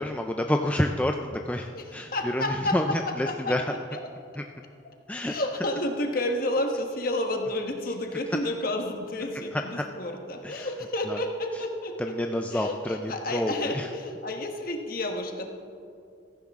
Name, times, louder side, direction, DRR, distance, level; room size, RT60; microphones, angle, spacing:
voice 1, 0.0-3.6 4.4-4.5 5.1-5.3 9.5-9.8 10.4-10.7 11.1-11.2 12.0-13.9, left 1 dB, 5° left, 3 dB, 0.4 m, -29 dB
voice 2, 1.7-4.0 4.8-4.9 5.2-12.2 12.5-15.4, left 1 dB, 50° left, 3 dB, 1.3 m, -31 dB
16.0 x 14.5 x 3.6 m, 2.4 s
head